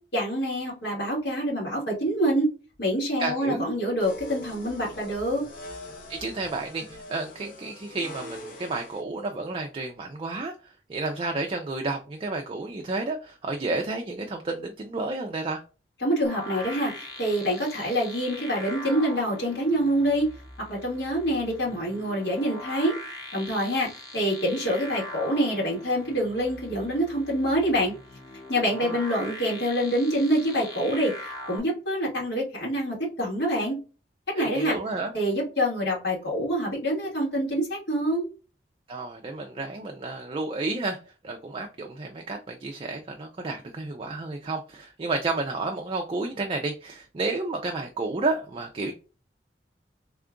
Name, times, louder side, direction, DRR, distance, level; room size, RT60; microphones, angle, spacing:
voice 1, 0.1-2.5 2.8-5.4 16.0-20.3 20.7-22.9 23.3-27.9 28.5-33.8 34.3-34.8 35.1-38.3, equal, 75° left, -3 dB, 2.1 m, -26 dB
voice 2, 3.2-3.6 6.1-10.5 10.9-15.6 28.9-29.3 34.3-35.1 38.9-41.0 41.2-48.9, right 3 dB, 30° right, 3 dB, 0.4 m, -31 dB
sound 1, 4.0-9.0, left 1 dB, 50° left, 0.9 m, -42 dB
sound 2, 16.2-31.6, left 1 dB, 20° left, 1.0 m, -41 dB
3.6 x 2.3 x 3.6 m, 0.34 s
head